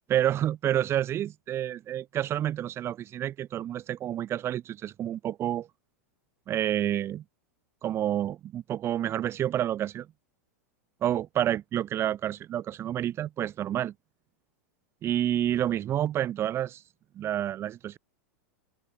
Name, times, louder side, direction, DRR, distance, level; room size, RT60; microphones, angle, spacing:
voice 1, 0.1-5.7 6.5-7.2 7.8-10.1 11.0-13.9 15.0-16.8 17.2-18.0, right 11 dB, 35° right, 7.2 m, -29 dB
open air
figure-of-eight pair, 95°, 8 cm